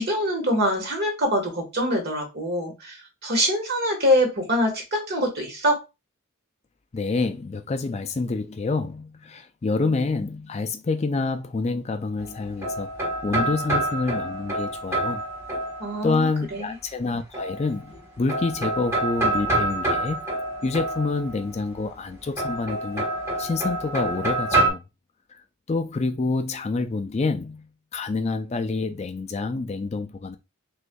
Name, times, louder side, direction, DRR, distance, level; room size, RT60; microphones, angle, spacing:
voice 1, 0.0-3.0 3.2-5.8 15.8-16.8, equal, 45° right, 1.4 m, -24 dB
voice 2, 6.9-15.2 16.0-20.3 20.6-23.1 23.4-24.8 25.3-25.4 25.7-27.7 27.9-30.4, left 3 dB, 30° left, 0.3 m, -27 dB
sound 1, 12.2-16.2 17.3-18.0 18.3-21.5 22.4-24.7, right 2 dB, 10° right, 1.2 m, -27 dB
6.3 x 2.6 x 2.2 m
head